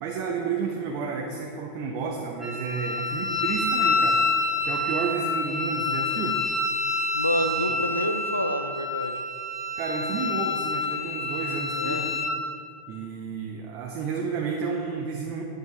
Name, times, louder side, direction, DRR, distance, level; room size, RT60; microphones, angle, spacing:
voice 1, 0.0-4.2 4.6-6.4 9.8-12.1 12.9-15.4, right 5 dB, 40° right, 0 dB, 0.8 m, -31 dB
Wind instrument woodwind instrument, 2.4-12.4, left 3 dB, ahead, 1.1 m, -27 dB
voice 2, 7.2-9.2 11.7-12.0, left 1 dB, 85° left, 9 dB, 0.4 m, -28 dB
9.7 x 7.7 x 3.4 m, 2.4 s
figure-of-eight pair, 90°, 0 cm